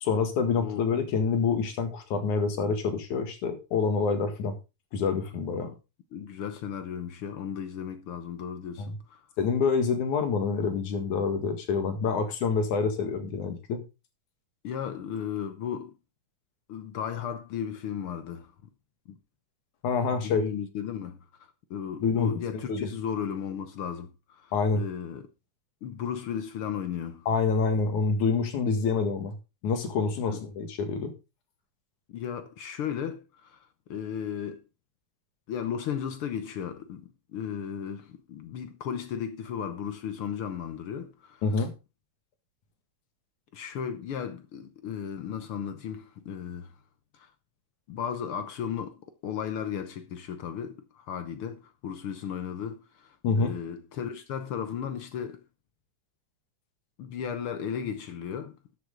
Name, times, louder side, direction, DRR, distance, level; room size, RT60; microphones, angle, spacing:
voice 1, 0.0-4.6 4.9-5.7 8.8-8.9 9.4-13.8 19.8-20.4 22.0-22.9 24.5-24.8 27.3-29.3 29.6-31.1 41.4-41.7 53.2-53.5, left 5 dB, 90° left, 3.3 m, -27 dB
voice 2, 6.1-9.2 14.6-16.0 16.7-18.5 19.1-19.2 20.2-25.3 25.8-27.3 30.2-30.5 32.1-34.6 35.5-41.4 43.5-46.7 47.1-47.3 47.9-55.4 57.0-58.6, left 8 dB, 65° left, 1.4 m, -35 dB
13.0 x 8.1 x 3.8 m
omnidirectional pair, 3.3 m